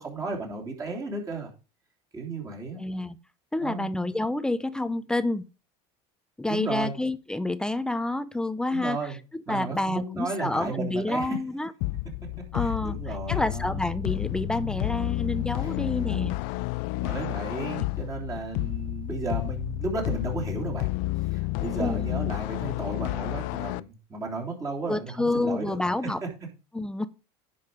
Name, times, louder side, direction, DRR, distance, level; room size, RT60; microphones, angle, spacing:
voice 1, 0.0-1.5 2.1-2.8 3.6-3.9 6.5-6.9 8.7-9.2 9.5-11.4 12.6-13.9 15.6-16.3 17.0-20.9 21.2-25.8 26.2-26.3, right 3 dB, 25° right, 0 dB, 3.3 m, -34 dB
voice 2, 2.8-3.2 3.5-5.5 6.4-9.0 9.5-11.7 12.5-13.0 13.3-16.4 17.8-17.9 21.8-22.1 24.9-26.2 26.7-27.1, left 2 dB, 5° left, 13 dB, 0.6 m, -28 dB
sound 1, 11.8-23.8, left 20 dB, 70° left, 0.4 m, -30 dB
10.5 x 5.5 x 5.0 m, 0.32 s
supercardioid pair, 130°, 14 cm